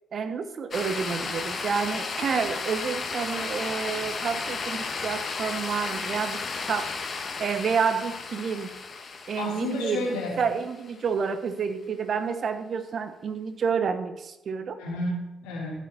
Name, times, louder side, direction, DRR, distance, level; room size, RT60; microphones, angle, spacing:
voice 1, 0.1-8.7 9.3-10.1 10.4-14.8, right 6 dB, 55° right, 10 dB, 1.1 m, -29 dB
sound 1, 0.7-11.0, left 4 dB, 50° left, 1.9 m, -34 dB
voice 2, 9.4-10.4 14.8-15.8, left 2 dB, 80° left, -2 dB, 3.2 m, -31 dB
14.5 x 7.2 x 4.4 m, 0.97 s
hypercardioid pair, 45°, 0 cm